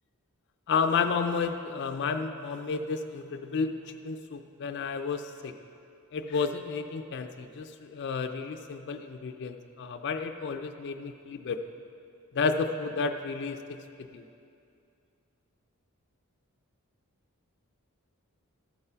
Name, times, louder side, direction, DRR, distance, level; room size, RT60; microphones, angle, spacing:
voice 1, 0.7-5.5 6.1-11.6 12.3-13.6 14.0-14.2, left 5 dB, 50° left, 6 dB, 0.4 m, -31 dB
13.5 x 4.7 x 5.6 m, 2.5 s
head